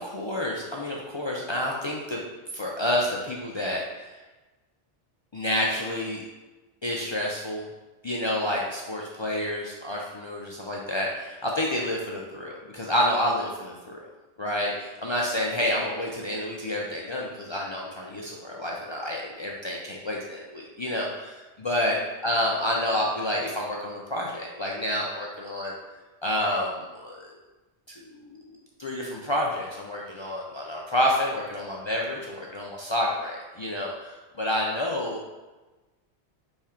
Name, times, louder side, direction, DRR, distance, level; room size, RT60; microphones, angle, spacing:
voice 1, 0.0-2.2 2.5-4.2 5.3-6.3 6.8-7.6 8.0-14.1 14.4-25.7 26.2-27.3 28.1-35.2, left 1 dB, 50° left, -3 dB, 0.3 m, -29 dB
3.6 x 3.2 x 4.3 m, 1.2 s
omnidirectional pair, 1.1 m